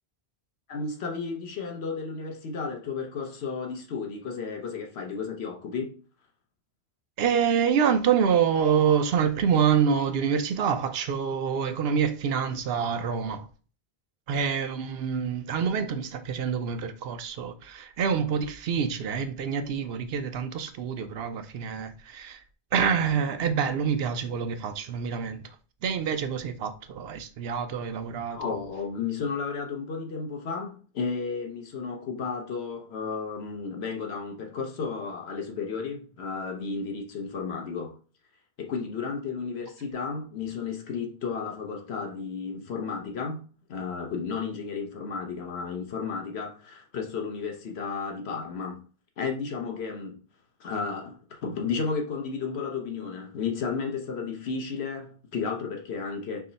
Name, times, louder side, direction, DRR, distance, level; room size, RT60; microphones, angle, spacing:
voice 1, 0.7-6.0 28.3-38.0 38.6-48.8 49.2-50.2 50.6-56.5, left 5 dB, 85° left, 1.1 m, -33 dB
voice 2, 7.2-13.5 14.3-22.4 22.7-25.5 25.8-28.4, right 7 dB, 75° right, 0.8 m, -26 dB
4.7 x 2.1 x 3.9 m
omnidirectional pair, 1.1 m